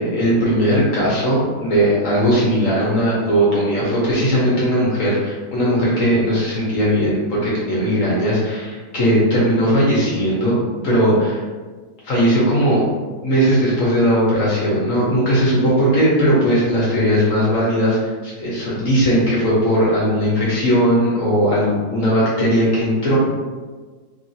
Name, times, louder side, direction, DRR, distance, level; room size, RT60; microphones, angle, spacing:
voice 1, 0.0-10.6 10.8-11.4 12.0-12.8 13.2-23.2, equal, 55° left, -6 dB, 0.9 m, -18 dB
3.0 x 2.6 x 2.6 m, 1.4 s
omnidirectional pair, 2.0 m